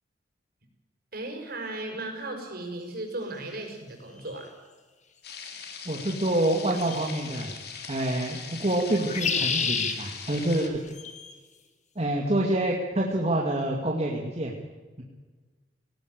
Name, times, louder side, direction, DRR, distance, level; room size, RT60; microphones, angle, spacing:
voice 1, 1.1-4.5, right 2 dB, 55° right, 2 dB, 5.9 m, -36 dB
sound 1, 4.3-4.4 6.8-7.2 8.9-10.0 10.9-11.3, left 6 dB, 40° left, 2.1 m, -29 dB
sound 2, 5.2-10.7, left 6 dB, 60° left, 3.1 m, -41 dB
voice 2, 5.9-7.5 7.9-10.8 12.0-14.5, right 1 dB, 35° right, -1 dB, 2.2 m, -27 dB
18.5 x 18.0 x 8.1 m, 1.3 s
head